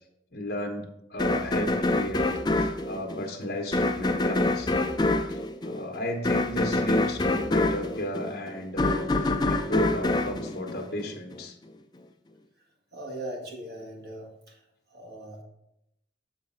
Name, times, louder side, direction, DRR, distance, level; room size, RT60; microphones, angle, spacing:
voice 1, 0.3-4.7 5.3-11.5, left 1 dB, 60° left, 0 dB, 1.0 m, -34 dB
sound 1, 1.2-11.4, left 2 dB, 25° left, 0.4 m, -26 dB
voice 2, 12.9-14.6 14.9-15.4, right 1 dB, 60° right, 0 dB, 1.8 m, -39 dB
6.7 x 4.0 x 5.4 m, 0.82 s
head